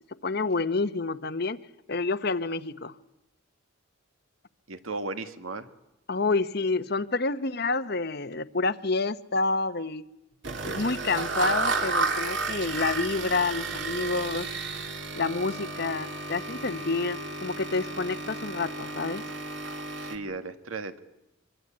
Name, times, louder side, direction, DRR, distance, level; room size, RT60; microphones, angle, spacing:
voice 1, 0.2-1.6 1.9-2.9 6.1-10.1 10.6-14.5 15.2-19.2, left 3 dB, 50° left, 0.9 m, -28 dB
voice 2, 4.7-5.7 20.0-21.0, right 3 dB, 80° right, 1.8 m, -35 dB
sound 1, 10.4-20.2, right 3 dB, 60° right, 2.5 m, -32 dB
25.0 x 23.5 x 8.8 m
head